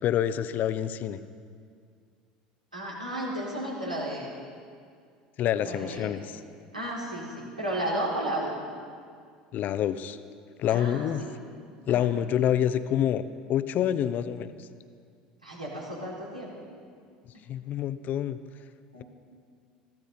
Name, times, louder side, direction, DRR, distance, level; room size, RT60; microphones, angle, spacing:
voice 1, 0.0-1.2 5.4-6.4 9.5-10.2 10.6-11.2 11.9-13.2 13.5-14.7 17.5-18.4, left 10 dB, 45° left, 13 dB, 0.8 m, -27 dB
voice 2, 2.7-4.3 5.6-6.2 6.7-8.6 10.7-11.3 11.9-12.1 15.4-16.5 18.9-19.0, right 1 dB, 90° right, -5 dB, 4.3 m, -33 dB
22.0 x 15.0 x 4.2 m, 2.2 s
figure-of-eight pair, 70°, 4 cm